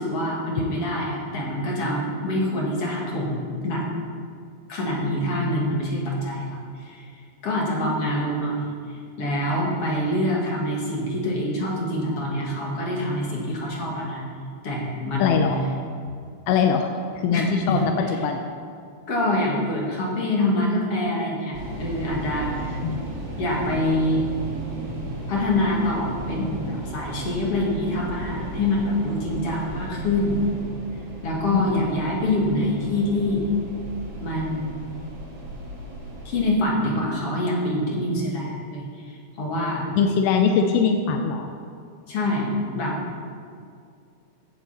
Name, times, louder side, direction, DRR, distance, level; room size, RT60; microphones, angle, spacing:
voice 1, 0.0-3.8 4.7-7.1 7.4-8.6 8.9-14.2 14.6-15.4 17.3-17.4 17.7-18.2 19.1-22.8 23.4-24.3 25.3-30.4 31.2-33.4 34.2-34.8 36.2-39.9 42.1-43.0, left 1 dB, 45° left, -3 dB, 2.5 m, -25 dB
voice 2, 15.2-15.6 16.5-16.9 17.2-17.9 18.2-18.4 22.8-23.3 31.5-31.7 40.0-41.5, left 6 dB, 90° left, 4 dB, 2.6 m, -22 dB
sound 1, 21.5-36.5, right 1 dB, 40° right, 3.4 m, -35 dB
15.0 x 8.2 x 4.3 m, 2.3 s
omnidirectional pair, 4.3 m